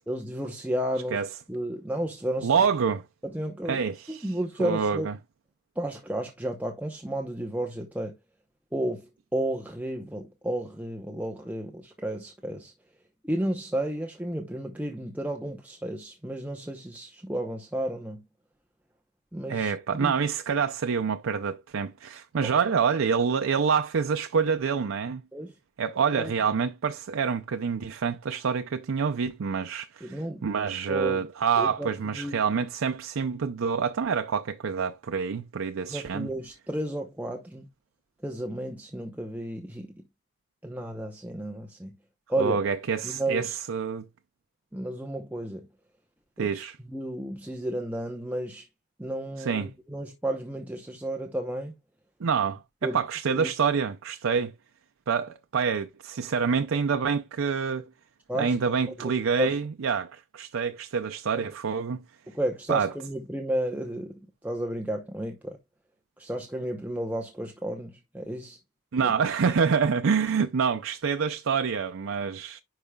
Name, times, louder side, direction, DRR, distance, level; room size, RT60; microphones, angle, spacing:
voice 1, 0.1-1.2 1.5-2.5 3.2-3.8 4.1-5.1 5.8-8.1 8.7-12.7 13.2-18.2 19.3-19.7 20.0-20.1 25.3-25.5 26.1-26.3 30.0-30.4 30.9-31.2 31.6-32.4 35.9-37.7 38.2-39.9 40.6-41.9 42.3-42.6 43.0-43.6 44.7-45.7 46.4-46.5 46.9-48.7 49.0-51.7 52.8-53.0 53.3-53.5 58.3-58.5 59.0-59.6 61.3-61.5 62.3-64.1 64.4-65.6 66.2-68.6 69.0-69.1, right 1 dB, 10° right, 0.7 m, -32 dB
voice 2, 2.4-3.0 3.7-5.1 19.5-25.2 25.8-36.3 42.4-44.0 46.4-46.8 49.4-49.7 52.2-54.5 55.1-57.9 58.3-62.0 62.7-62.9 68.9-72.6, right 6 dB, 90° right, 0.5 m, -27 dB
10.5 x 4.8 x 2.3 m
head